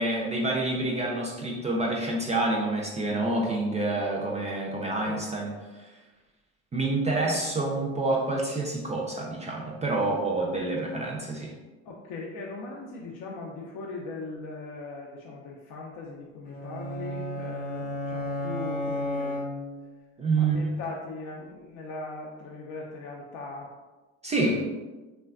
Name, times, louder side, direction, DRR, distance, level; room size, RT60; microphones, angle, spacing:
voice 1, 0.0-5.5 5.7-5.9 6.7-11.5 20.2-20.6 24.2-24.6, right 2 dB, 20° right, -2 dB, 0.4 m, -27 dB
voice 2, 11.9-19.4 20.4-23.7, left 3 dB, 55° left, -2 dB, 0.5 m, -39 dB
sound 1, 16.5-20.0, left 1 dB, 25° left, 0.7 m, -33 dB
3.3 x 2.1 x 2.4 m, 1.2 s
hypercardioid pair, 70°, 38 cm